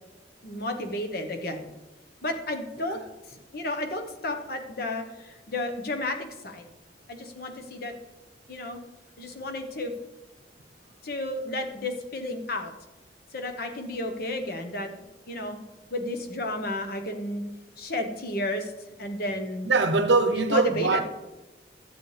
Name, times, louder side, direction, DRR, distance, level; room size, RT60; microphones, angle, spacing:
voice 1, 0.4-1.7 2.2-3.0 3.3-6.7 7.1-7.9 8.5-8.8 9.2-9.9 11.0-12.7 13.3-14.9 15.3-15.6 15.9-17.4 17.8-18.7 19.0-19.7 20.3-21.0, left 1 dB, 60° left, 1.1 m, -32 dB
voice 2, 19.6-21.0, right 3 dB, 85° right, 0.8 m, -22 dB
12.0 x 8.1 x 3.3 m
head